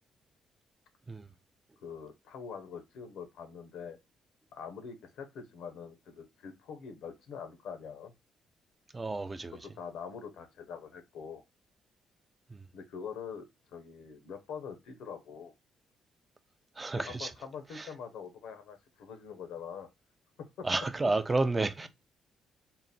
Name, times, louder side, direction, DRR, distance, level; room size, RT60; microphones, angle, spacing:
voice 1, 1.8-4.0 4.5-8.1 9.6-11.4 12.7-15.5 16.9-19.9 20.6-20.7, left 6 dB, 85° left, 0.8 m, -44 dB
voice 2, 8.9-9.6 12.5-12.6 16.8-17.3 17.7-17.9 20.6-21.9, right 3 dB, 25° right, 0.4 m, -31 dB
3.8 x 2.2 x 4.1 m
cardioid pair, 90°, 0 cm